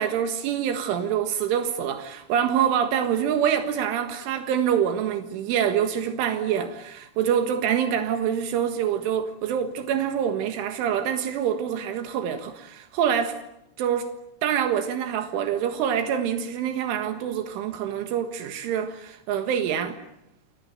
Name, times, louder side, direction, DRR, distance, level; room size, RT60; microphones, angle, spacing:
voice 1, 0.0-13.4 13.8-14.1 14.4-20.0, right 8 dB, 85° right, 4.1 m, -25 dB
29.0 x 22.0 x 9.3 m
omnidirectional pair, 5.5 m